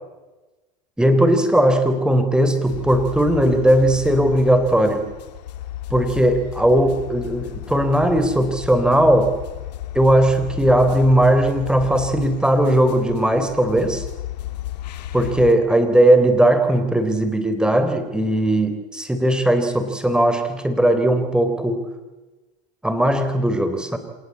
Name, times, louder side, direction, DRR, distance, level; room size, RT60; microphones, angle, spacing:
voice 1, 1.0-5.0 5.9-9.3 9.9-14.1 15.1-21.8 22.8-24.0, right 1 dB, 5° right, 8 dB, 3.6 m, -18 dB
sound 1, 2.7-15.5, left 12 dB, 85° left, 2.0 m, -33 dB
26.0 x 19.5 x 8.5 m, 1.2 s
hypercardioid pair, 100°, 21 cm